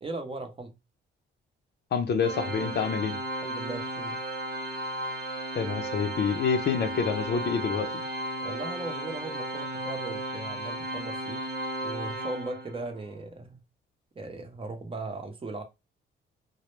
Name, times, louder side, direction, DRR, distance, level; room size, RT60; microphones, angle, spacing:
voice 1, 0.0-0.7 3.4-4.2 6.7-7.1 8.4-11.4 11.8-13.6 14.1-15.6, right 2 dB, 30° right, 0.7 m, -38 dB
voice 2, 1.9-3.2 5.5-8.0, left 6 dB, 55° left, 0.5 m, -27 dB
Organ, 2.2-13.0, right 1 dB, 85° right, 1.0 m, -34 dB
2.1 x 2.0 x 3.1 m
cardioid pair, 90°, 20 cm